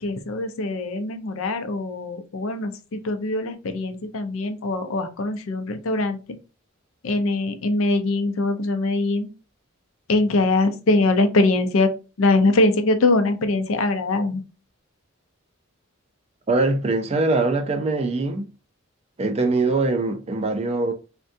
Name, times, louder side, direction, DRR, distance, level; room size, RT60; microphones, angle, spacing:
voice 1, 0.0-6.2 7.0-9.3 10.1-11.9 12.2-14.4, left 2 dB, 75° left, 0.5 m, -22 dB
voice 2, 16.5-18.4 19.2-20.9, right 3 dB, 30° right, 0.4 m, -22 dB
3.5 x 2.2 x 2.6 m
head